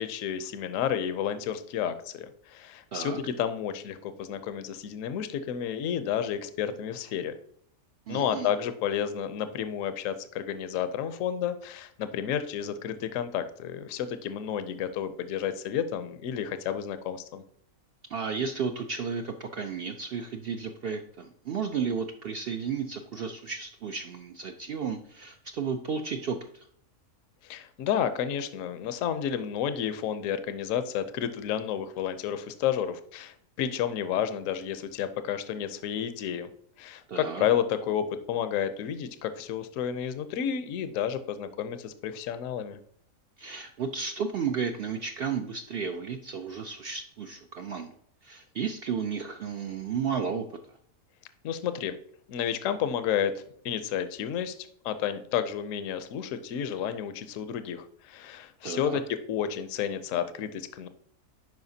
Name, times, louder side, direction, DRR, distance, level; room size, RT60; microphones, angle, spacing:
voice 1, 0.0-7.3 8.1-17.4 27.4-36.5 36.8-42.8 51.4-52.0 52.3-54.6 54.8-60.9, left 9 dB, 70° left, 11 dB, 1.0 m, -31 dB
voice 2, 8.1-8.5 18.1-26.7 37.1-37.4 43.4-47.9 48.2-50.5 58.6-59.0, right 6 dB, 65° right, 6 dB, 0.6 m, -33 dB
10.5 x 4.7 x 2.7 m, 0.64 s
omnidirectional pair, 1.5 m